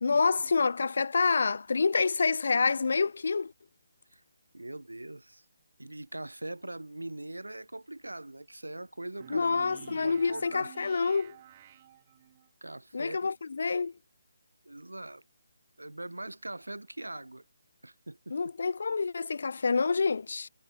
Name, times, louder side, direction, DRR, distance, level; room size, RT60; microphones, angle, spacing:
voice 1, 0.0-3.5 9.3-11.4 12.9-13.9 18.3-20.5, left 4 dB, 60° left, 0.7 m, -27 dB
voice 2, 4.5-5.4 5.8-10.7 12.6-13.3 14.7-15.2 15.8-17.4 17.8-18.4, right 2 dB, 85° right, 1.9 m, -42 dB
sound 1, 9.2-12.5, right 12 dB, 30° right, 1.4 m, -51 dB
figure-of-eight pair, 150°, 0 cm